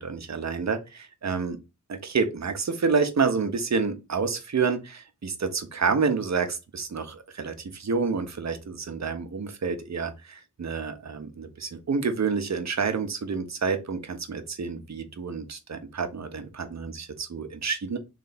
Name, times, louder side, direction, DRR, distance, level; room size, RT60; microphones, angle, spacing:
voice 1, 0.0-1.6 1.9-18.0, right 5 dB, 60° right, 0.9 m, -28 dB
3.3 x 3.2 x 4.0 m
wide cardioid pair, 70°, 31 cm